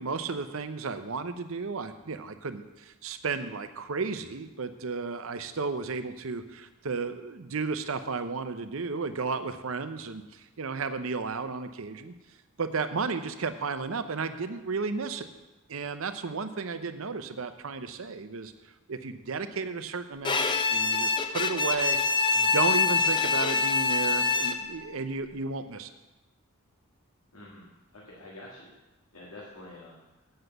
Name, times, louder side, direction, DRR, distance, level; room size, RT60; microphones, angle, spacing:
voice 1, 0.0-12.1 12.6-15.3 15.7-18.5 18.9-22.0 22.3-25.9, right 4 dB, 65° right, 10 dB, 0.7 m, -33 dB
Bowed string instrument, 20.2-24.8, left 4 dB, 20° left, 0.6 m, -25 dB
voice 2, 27.3-28.7 29.1-30.0, left 1 dB, 85° left, -5 dB, 1.9 m, -47 dB
8.0 x 6.7 x 7.9 m, 1.1 s
head